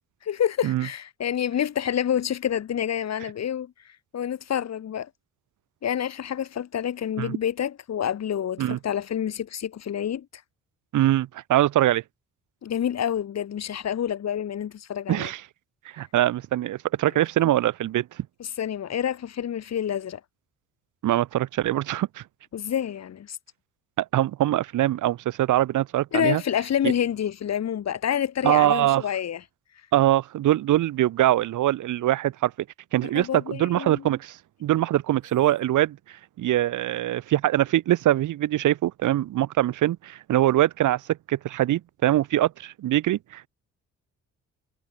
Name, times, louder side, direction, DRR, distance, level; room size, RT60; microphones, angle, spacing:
voice 1, 0.2-3.7 4.1-5.1 5.8-10.3 12.6-15.3 18.4-20.2 22.5-23.4 26.1-29.4 33.2-34.1, left 9 dB, 60° left, 3.9 m, -28 dB
voice 2, 10.9-12.0 15.1-15.4 15.9-18.3 21.0-22.2 24.0-26.4 26.8-26.9 28.4-29.0 29.9-32.5 32.9-43.5, right 13 dB, 80° right, 3.4 m, -23 dB
cardioid pair, 90°, 30 cm